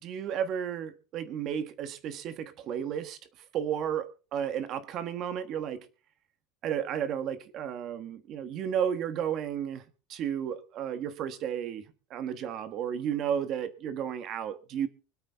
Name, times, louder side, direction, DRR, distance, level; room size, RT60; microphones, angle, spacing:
voice 1, 0.0-3.2 3.5-5.9 6.6-9.8 10.1-14.9, right 8 dB, 35° right, 11 dB, 1.4 m, -33 dB
25.0 x 8.7 x 3.5 m, 0.36 s
cardioid pair, 170°, 0 cm